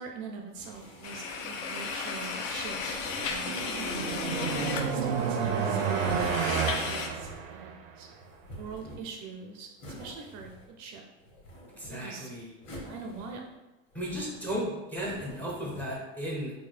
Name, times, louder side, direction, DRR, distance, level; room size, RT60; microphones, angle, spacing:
voice 1, 0.0-3.7 4.8-6.3 6.5-8.1 8.6-11.1 11.9-12.3 12.8-13.5, right 5 dB, 45° right, 3 dB, 0.4 m, -43 dB
sound 1, 0.5-2.0 2.8-3.9 4.5-5.6 6.1-7.5 8.1-9.3 9.8-10.9 11.2-12.1 12.6-13.6 13.9-14.6 15.0-15.9, equal, 30° left, 1.5 m, -47 dB
sound 2, 1.0-7.1, left 5 dB, 70° left, 0.6 m, -35 dB
sound 3, 2.8-8.0, right 6 dB, 90° right, 0.6 m, -30 dB
voice 2, 11.8-12.5 13.9-16.5, equal, 5° left, -3 dB, 0.5 m, -35 dB
3.7 x 2.3 x 3.2 m, 1.0 s
supercardioid pair, 145°, 39 cm